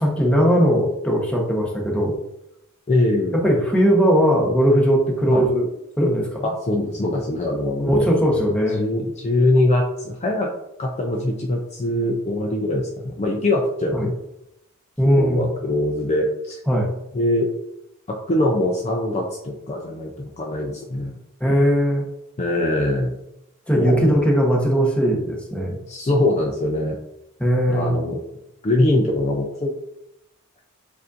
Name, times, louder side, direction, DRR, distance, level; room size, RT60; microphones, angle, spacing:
voice 1, 0.0-2.2 3.3-5.7 6.0-6.5 7.8-8.8 13.9-14.1 15.0-15.5 16.7-16.9 21.4-22.1 23.7-25.8 27.4-28.0, equal, 5° left, -2 dB, 0.9 m, -19 dB
voice 2, 2.9-3.4 5.3-5.4 6.4-8.1 8.7-10.5 10.8-14.1 15.0-16.6 17.1-17.5 18.1-21.2 22.4-23.2 23.7-24.1 25.9-27.0 27.7-28.2 28.6-29.7, left 1 dB, 30° left, 0 dB, 0.5 m, -22 dB
6.9 x 2.6 x 2.5 m, 0.84 s
head